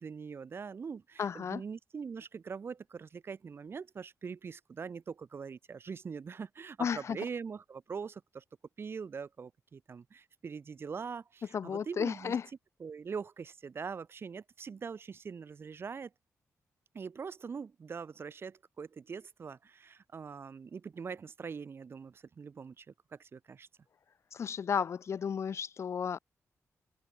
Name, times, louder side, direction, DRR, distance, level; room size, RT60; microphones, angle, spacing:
voice 1, 0.0-8.4 8.8-12.3 12.8-16.1 16.9-23.7, right 5 dB, 45° right, 5.0 m, -43 dB
voice 2, 1.2-1.6 6.8-7.2 11.5-12.5 24.3-26.2, left 7 dB, 55° left, 2.2 m, -33 dB
wide cardioid pair, 135°, 6 cm